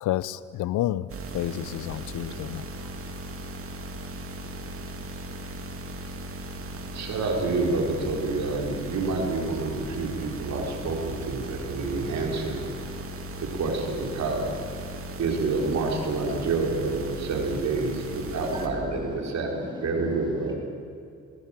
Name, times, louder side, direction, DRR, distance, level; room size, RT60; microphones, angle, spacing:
voice 1, 0.0-1.1 1.3-2.6, left 13 dB, 80° left, 17 dB, 0.7 m, -29 dB
sound 1, 1.1-18.7, right 1 dB, 45° right, 2.6 m, -38 dB
voice 2, 6.9-12.6 13.6-14.5 15.2-19.5 19.8-20.5, right 3 dB, 60° right, 1 dB, 4.6 m, -28 dB
voice 3, 18.4-20.5, equal, 15° right, 0 dB, 6.4 m, -37 dB
19.5 x 19.0 x 9.1 m, 2.4 s
cardioid pair, 90°, 30 cm